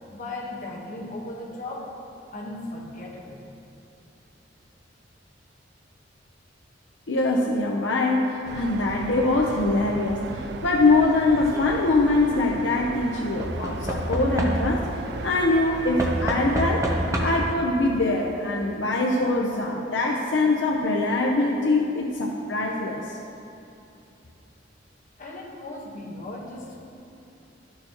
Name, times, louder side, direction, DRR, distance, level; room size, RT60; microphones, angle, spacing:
voice 1, 0.1-1.9 2.3-3.4 10.2-10.5 17.0-17.1 25.2-26.9, left 2 dB, 45° left, -2 dB, 1.3 m, -37 dB
voice 2, 7.1-10.2 10.6-14.9 15.2-16.9 17.2-23.2, left 2 dB, 75° left, -1 dB, 0.7 m, -23 dB
sound 1, 8.4-17.6, right 4 dB, 60° right, 0.3 m, -37 dB
Knock / Wood, 11.2-11.7 13.4-14.9 16.0-17.6 18.6-18.7 18.9-19.0, equal, 15° right, 0.8 m, -28 dB
12.5 x 6.7 x 2.9 m, 2.8 s
head